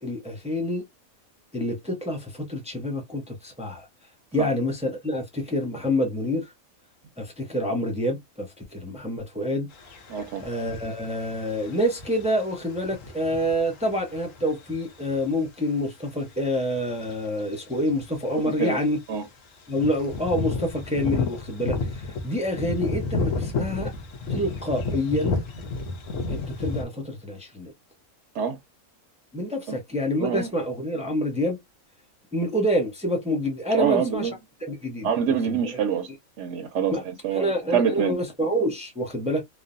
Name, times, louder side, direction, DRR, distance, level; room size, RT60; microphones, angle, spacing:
voice 1, 0.0-0.8 1.5-3.9 4.3-6.5 7.2-9.7 10.4-19.0 19.7-23.9 24.3-25.4 26.3-27.7 29.3-31.6 32.3-34.3 34.7-35.6 36.9-37.0 37.3-39.4, equal, 10° right, 0.4 m, -27 dB
sound 1, 9.7-15.4 17.1-17.2 17.5-18.1 18.4-18.5 18.7-18.9 19.7-26.8, left 3 dB, 70° left, 1.1 m, -31 dB
voice 2, 10.1-10.4 18.4-18.8 19.1-19.3 28.3-28.6 29.7-29.8 30.2-30.5 33.7-34.3 35.0-36.1 36.4-38.2, right 7 dB, 65° right, 0.8 m, -26 dB
3.1 x 2.0 x 2.5 m
omnidirectional pair, 1.4 m